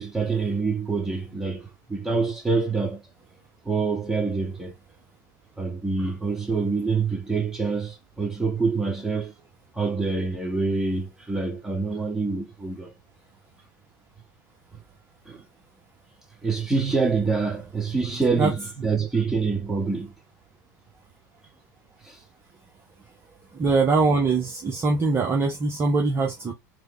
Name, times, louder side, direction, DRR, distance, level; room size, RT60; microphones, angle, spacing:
voice 1, 0.0-3.0 3.6-4.7 5.6-9.3 9.7-12.9 14.7-14.8 15.2-15.4 16.4-20.1 22.0-22.2, right 4 dB, 5° right, 1.4 m, -26 dB
voice 2, 23.6-26.5, right 3 dB, 25° right, 0.8 m, -22 dB
3.5 x 2.2 x 3.1 m
figure-of-eight pair, 80°, 10 cm